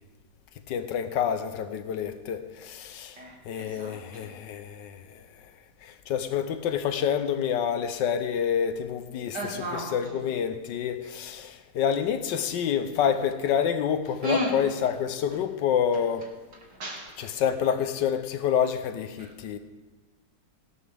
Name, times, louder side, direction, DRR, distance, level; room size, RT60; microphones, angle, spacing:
voice 1, 0.7-3.2 3.5-5.2 5.8-16.3 17.2-19.6, left 8 dB, 75° left, 10 dB, 1.3 m, -28 dB
voice 2, 3.2-4.3 9.3-10.2 14.2-14.6 16.7-17.3 19.2-19.3, equal, 65° right, -1 dB, 2.9 m, -34 dB
17.0 x 11.0 x 3.4 m, 1.2 s
omnidirectional pair, 2.0 m